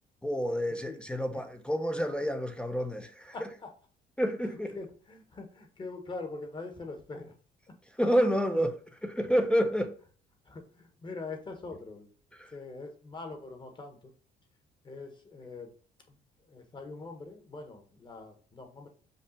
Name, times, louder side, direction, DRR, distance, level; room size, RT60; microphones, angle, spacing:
voice 1, 0.2-3.3 4.2-4.8 8.0-8.7 9.0-9.9 12.4-12.5, equal, 5° left, 0.5 m, -28 dB
voice 2, 3.3-3.7 4.4-7.3 8.5-8.6 10.4-12.1 12.5-14.1 14.8-15.7 16.1-16.2 16.5-18.9, left 3 dB, 30° left, 1.2 m, -43 dB
5.2 x 2.4 x 4.1 m
cardioid pair, 110°, 17 cm